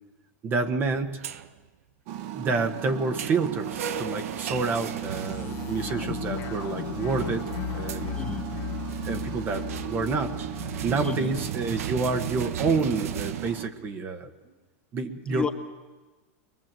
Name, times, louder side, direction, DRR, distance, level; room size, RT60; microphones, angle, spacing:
voice 1, 0.4-1.2 2.3-8.2 9.0-10.3 10.8-14.3 14.9-15.5, right 4 dB, 25° right, 7 dB, 1.4 m, -28 dB
sound 1, 0.9-1.7 2.8-5.9 7.1-8.0 8.9-13.5, right 9 dB, 85° right, 1.2 m, -37 dB
sound 2, 2.1-13.7, right 10 dB, 45° right, 1.5 m, -37 dB
sound 3, 4.9-11.2, left 10 dB, 40° left, 1.1 m, -36 dB
voice 2, 8.1-8.6 11.0-11.4 15.2-15.5, left 4 dB, 15° left, 4 dB, 1.4 m, -32 dB
22.5 x 22.0 x 7.6 m, 1.3 s
supercardioid pair, 150°, 8 cm